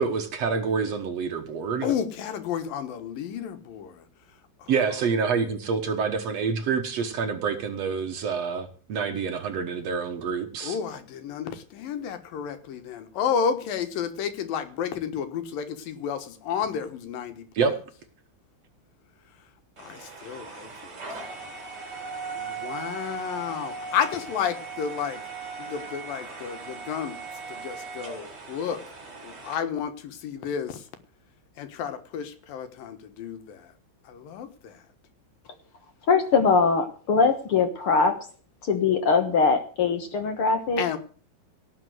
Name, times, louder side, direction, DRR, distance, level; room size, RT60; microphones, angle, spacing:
voice 1, 0.0-1.9 4.7-10.8 17.6-17.7, right 5 dB, 60° right, 7 dB, 2.1 m, -27 dB
voice 2, 1.8-4.0 4.6-4.7 10.6-17.7 19.8-20.9 22.3-25.2 25.6-27.2 27.5-28.8 29.2-30.8 31.6-33.7 34.1-34.8 40.8-41.0, left 7 dB, 80° left, 10 dB, 3.2 m, -31 dB
sound 1, 19.8-29.6, right 4 dB, 30° right, 4.1 m, -38 dB
voice 3, 36.1-38.1 38.7-40.8, left 5 dB, 50° left, 7 dB, 1.8 m, -22 dB
18.0 x 6.2 x 7.8 m, 0.40 s
omnidirectional pair, 3.9 m